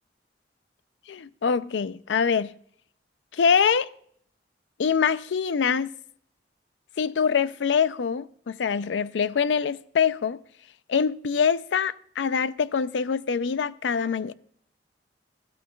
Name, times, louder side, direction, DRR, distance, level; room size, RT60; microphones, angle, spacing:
voice 1, 1.1-2.5 3.3-3.9 4.8-5.9 7.0-10.4 10.9-14.3, left 6 dB, 85° left, 0.4 m, -24 dB
13.5 x 12.5 x 2.3 m
head